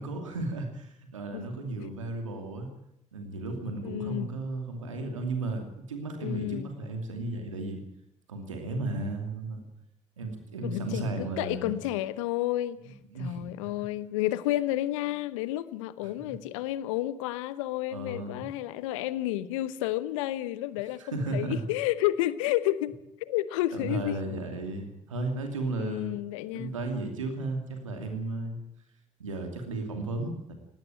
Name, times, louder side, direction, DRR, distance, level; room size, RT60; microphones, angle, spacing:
voice 1, 0.0-2.7 3.1-7.8 8.3-9.7 10.2-11.8 12.8-13.7 17.9-18.5 21.0-21.6 23.7-26.1 26.5-28.6 29.2-30.5, right 2 dB, 90° right, 2.6 m, -34 dB
voice 2, 3.8-4.3 6.2-6.7 10.6-12.9 13.2-24.2 25.8-26.8, left 15 dB, 80° left, 0.9 m, -31 dB
19.0 x 18.0 x 9.1 m
figure-of-eight pair, 40°, 16 cm